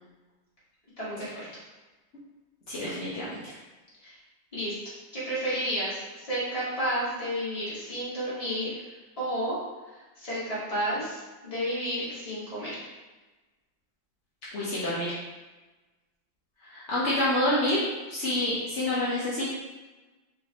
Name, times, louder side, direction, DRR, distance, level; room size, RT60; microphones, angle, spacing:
voice 1, 1.0-1.4 4.0-4.2 4.5-4.8 5.1-8.9 9.2-9.6 9.9-12.8, equal, 20° left, -10 dB, 1.4 m, -31 dB
voice 2, 2.7-3.4 14.5-15.1 16.7-17.8 18.1-19.5, left 1 dB, 65° left, -8 dB, 0.7 m, -27 dB
5.0 x 2.7 x 2.8 m, 1.2 s
omnidirectional pair, 2.2 m